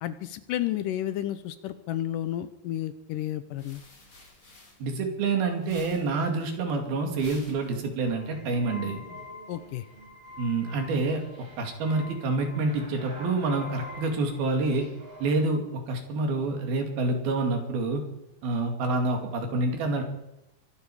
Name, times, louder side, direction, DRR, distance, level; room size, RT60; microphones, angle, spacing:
voice 1, 0.0-3.8 9.5-9.9, left 12 dB, 75° left, 12 dB, 2.1 m, -32 dB
sound 1, 3.5-5.3 5.6-8.3, left 2 dB, 35° left, 4.3 m, -51 dB
voice 2, 4.8-9.0 10.4-11.2 11.6-14.9 15.2-18.0 18.4-20.0, right 3 dB, 80° right, 3 dB, 4.3 m, -27 dB
sound 2, 8.0-15.5, left 1 dB, 45° right, 6.5 m, -45 dB
23.0 x 12.0 x 4.9 m, 0.88 s
omnidirectional pair, 4.3 m